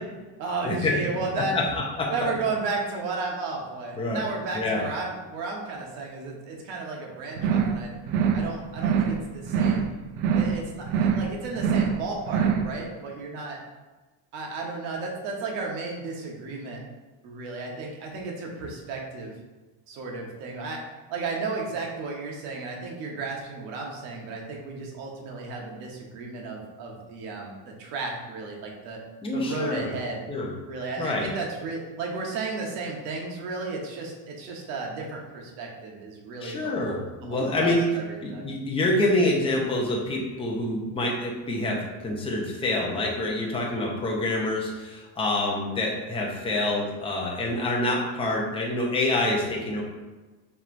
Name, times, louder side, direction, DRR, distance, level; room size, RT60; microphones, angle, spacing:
voice 1, 0.4-1.6 2.1-8.0 8.3-9.9 10.3-13.6 14.3-16.8 17.2-19.3 19.9-20.8 21.1-29.0 29.3-30.2 30.7-36.9 37.2-38.5, right 3 dB, 90° right, 0 dB, 1.3 m, -33 dB
voice 2, 1.4-2.1 4.0-4.2 4.5-4.8 29.2-29.9 30.3-30.5 31.0-31.2 36.4-37.8 38.2-49.8, left 2 dB, 10° left, -2 dB, 0.7 m, -26 dB
sound 1, 7.4-7.8 8.1-8.5 8.8-9.2 9.5-9.9 10.2-10.6 10.9-11.3 11.6-12.0 12.3-12.7, right 7 dB, 70° right, 0.6 m, -24 dB
5.9 x 3.5 x 2.6 m, 1.2 s
cardioid pair, 145°, 50 cm